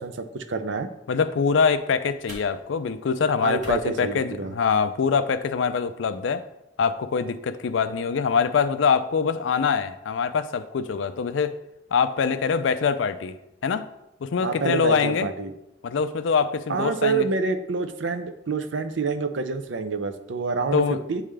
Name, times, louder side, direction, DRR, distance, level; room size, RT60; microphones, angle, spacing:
voice 1, 0.0-0.9 3.4-4.5 14.4-15.5 16.7-21.2, right 4 dB, 75° right, 9 dB, 0.5 m, -27 dB
voice 2, 1.1-6.4 6.8-11.5 11.9-13.4 13.6-13.9 14.2-15.3 15.8-17.2 20.7-21.0, left 6 dB, 80° left, 12 dB, 0.4 m, -24 dB
sound 1, 1.1-5.1, right 1 dB, 40° right, 1.7 m, -49 dB
8.5 x 3.6 x 3.3 m, 0.87 s
head